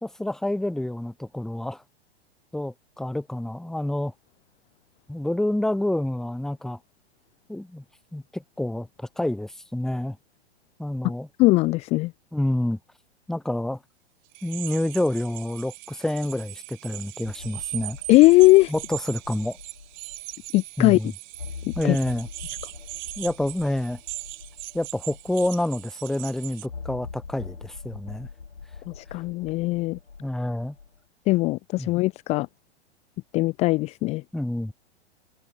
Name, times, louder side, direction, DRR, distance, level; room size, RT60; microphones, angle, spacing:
voice 1, 0.0-1.8 2.5-4.1 5.1-6.8 7.5-7.8 8.1-10.2 10.8-11.3 12.3-12.8 13.3-13.8 14.4-18.0 18.7-19.6 20.8-21.1 21.7-22.3 23.2-24.0 24.7-28.3 30.2-30.8 31.8-31.9 34.3-34.7, left 1 dB, ahead, 0.8 m, -28 dB
voice 2, 11.4-12.1 18.1-18.7 20.5-21.0 21.7-22.0 28.9-30.0 31.3-32.5 33.3-34.2, left 20 dB, 20° left, 0.5 m, -19 dB
sound 1, 14.3-26.7, right 21 dB, 45° right, 1.3 m, -40 dB
sound 2, 17.2-20.5 20.8-20.9 21.3-25.9 26.7-31.0, left 5 dB, 85° left, 2.0 m, -43 dB
figure-of-eight pair, 110°, 33 cm